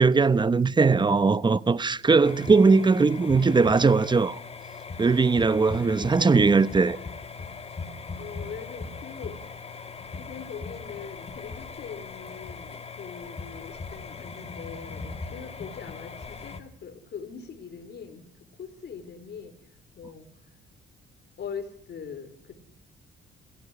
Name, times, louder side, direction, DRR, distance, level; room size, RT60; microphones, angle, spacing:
voice 1, 0.0-4.4 5.0-7.0, right 4 dB, 20° right, 0.9 m, -20 dB
sound 1, 2.2-16.6, left 4 dB, 30° left, 2.4 m, -39 dB
voice 2, 2.3-2.6 5.8-6.3 8.1-9.4 10.1-18.3 18.6-19.5 19.9-20.3 21.4-22.6, left 6 dB, 60° left, 4.1 m, -41 dB
22.5 x 17.0 x 9.8 m
cardioid pair, 90°, 20 cm